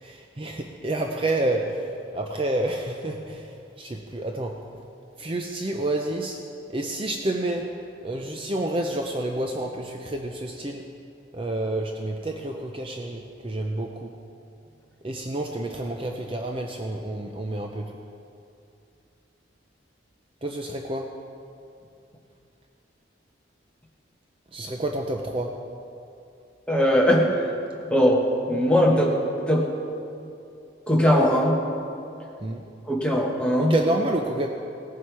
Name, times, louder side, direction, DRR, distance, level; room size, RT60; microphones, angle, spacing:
voice 1, 0.0-1.9 2.1-3.5 3.8-4.6 5.2-6.4 6.7-7.7 8.0-10.8 11.3-14.1 15.0-17.9 20.4-21.1 24.5-25.5 32.4-32.6 33.6-34.5, right 1 dB, 30° right, 2 dB, 0.6 m, -29 dB
voice 2, 26.7-27.5 27.9-28.2 28.5-29.2 29.5-29.7 30.9-31.6 32.9-33.7, equal, 5° left, -2 dB, 1.3 m, -20 dB
17.5 x 7.4 x 4.7 m, 2.6 s
head